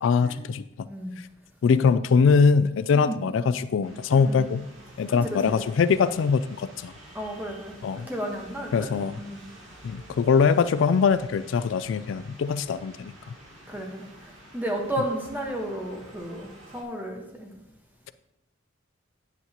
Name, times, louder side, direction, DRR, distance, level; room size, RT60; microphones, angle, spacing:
voice 1, 0.0-0.6 1.6-4.7 5.0-6.9 7.8-8.1 8.7-9.2 9.8-13.1, left 5 dB, 70° left, 13 dB, 0.3 m, -22 dB
sound 1, 3.8-16.8, right 1 dB, 80° right, 2.1 m, -49 dB
voice 2, 4.1-4.4 5.1-5.6 7.1-8.9 9.2-9.4 13.7-17.5, right 1 dB, 10° right, 0 dB, 1.3 m, -33 dB
9.5 x 7.8 x 2.9 m, 0.89 s
head